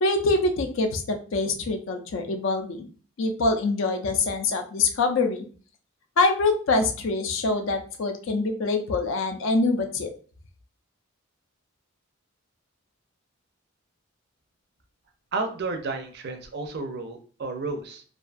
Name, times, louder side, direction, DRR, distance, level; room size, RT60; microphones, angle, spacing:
voice 1, 0.0-2.9 3.2-5.5 6.2-10.1, left 3 dB, 65° left, 5 dB, 0.4 m, -24 dB
voice 2, 15.3-18.0, right 3 dB, 50° right, 6 dB, 0.4 m, -32 dB
2.5 x 2.2 x 2.4 m, 0.41 s
head